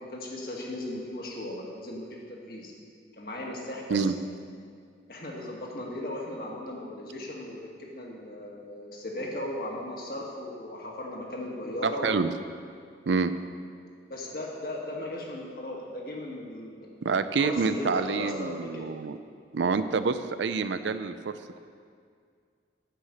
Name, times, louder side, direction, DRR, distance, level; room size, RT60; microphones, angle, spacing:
voice 1, 0.0-2.7 3.1-4.0 5.1-12.1 14.1-18.9, left 1 dB, 55° left, -2 dB, 1.7 m, -37 dB
voice 2, 11.8-12.3 13.1-13.3 17.0-19.2 19.5-21.6, right 5 dB, 85° right, 11 dB, 0.5 m, -27 dB
9.2 x 5.8 x 8.1 m, 2.2 s
head